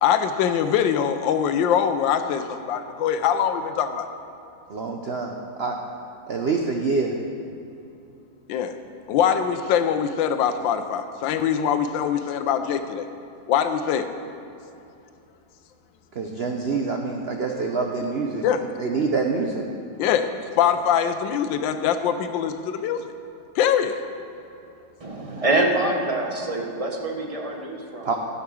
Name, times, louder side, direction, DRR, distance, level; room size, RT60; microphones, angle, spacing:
voice 1, 0.0-4.1 8.5-8.7 9.1-13.1 13.5-14.1 18.4-18.6 20.0-23.0 23.5-24.0, left 8 dB, 85° left, 9 dB, 1.3 m, -23 dB
voice 2, 4.7-5.8 6.3-7.1 16.1-18.5 18.8-19.7 28.0-28.1, right 4 dB, 70° right, 2 dB, 0.5 m, -26 dB
voice 3, 25.0-28.1, right 2 dB, 25° right, 0 dB, 0.7 m, -25 dB
13.0 x 5.8 x 6.2 m, 2.8 s
omnidirectional pair, 2.0 m